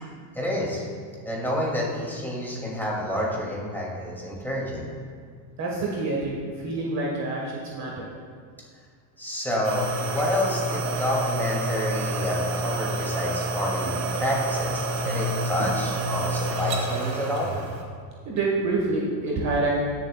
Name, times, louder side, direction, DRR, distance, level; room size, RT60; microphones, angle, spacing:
voice 1, 0.3-0.8 1.2-4.9 9.2-17.5, left 1 dB, 5° left, -4 dB, 2.6 m, -29 dB
voice 2, 5.6-8.1 18.3-19.7, right 3 dB, 35° right, -3 dB, 1.6 m, -27 dB
sound 1, 9.6-17.8, right 2 dB, 85° right, 2.1 m, -28 dB
19.5 x 7.2 x 2.4 m, 2.1 s
supercardioid pair, 115°, 50 cm